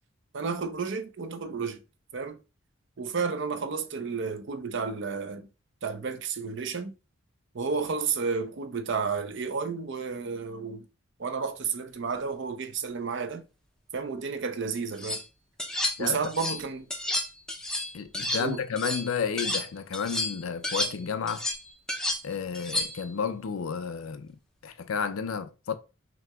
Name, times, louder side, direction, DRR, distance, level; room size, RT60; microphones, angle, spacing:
voice 1, 0.3-1.8 2.1-2.4 3.0-5.5 5.8-6.9 7.5-10.9 11.2-13.4 13.9-15.2 16.0-16.9 18.4-18.6, right 5 dB, 60° right, 0.5 m, -31 dB
sound 1, 14.8-15.2 15.6-16.6 16.9-19.7 19.9-23.1, left 1 dB, 5° left, 0.5 m, -31 dB
voice 2, 17.9-21.5 22.2-24.4 24.6-25.8, left 6 dB, 75° left, 0.5 m, -31 dB
5.9 x 2.9 x 2.3 m
head